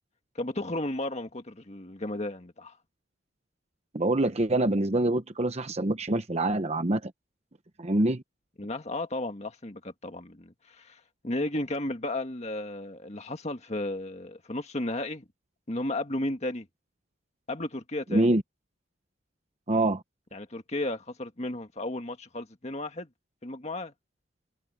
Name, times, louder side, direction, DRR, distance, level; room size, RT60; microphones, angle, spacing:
voice 1, 0.4-2.8 8.6-15.2 15.7-16.7 17.5-18.3 20.3-23.1 23.4-23.9, left 1 dB, 35° left, 1.8 m, -34 dB
voice 2, 3.9-7.1 7.8-8.2 18.1-18.4 19.7-20.0, right 1 dB, 35° right, 0.9 m, -25 dB
head